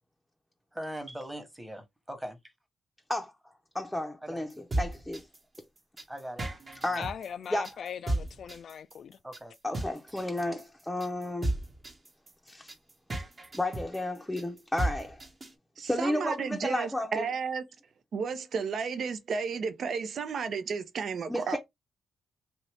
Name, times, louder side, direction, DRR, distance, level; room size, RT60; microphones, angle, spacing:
voice 1, 0.7-2.5 4.2-4.6 6.1-6.9 9.2-9.5, right 1 dB, 10° right, 1.2 m, -41 dB
voice 2, 3.7-5.3 6.8-7.0 7.5-7.7 9.6-11.5 12.5-12.7 13.5-15.2 15.8-17.3 21.3-21.6, left 1 dB, 10° left, 0.6 m, -32 dB
sound 1, 4.5-15.5, right 1 dB, 35° right, 1.1 m, -34 dB
voice 3, 7.0-9.2, left 7 dB, 65° left, 0.3 m, -39 dB
voice 4, 15.8-17.6 18.1-21.6, right 5 dB, 65° right, 0.6 m, -33 dB
2.8 x 2.6 x 3.4 m
cardioid pair, 70°, 0 cm